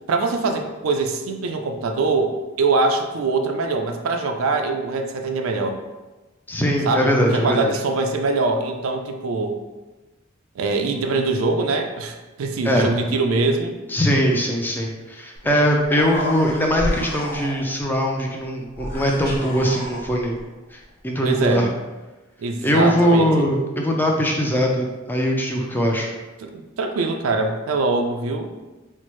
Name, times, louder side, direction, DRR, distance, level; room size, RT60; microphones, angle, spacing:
voice 1, 0.1-5.8 6.9-9.6 10.6-13.8 21.2-21.7 22.4-23.5 26.4-28.5, right 3 dB, 85° right, 5 dB, 0.4 m, -23 dB
voice 2, 6.5-7.7 12.6-12.9 13.9-20.4 20.7-21.7 22.6-26.1, equal, 10° left, 0 dB, 0.4 m, -21 dB
Human voice, 15.4-15.5 15.7-17.8 18.7-20.4, left 1 dB, 50° left, 0.7 m, -30 dB
4.3 x 2.0 x 3.1 m, 1.2 s
head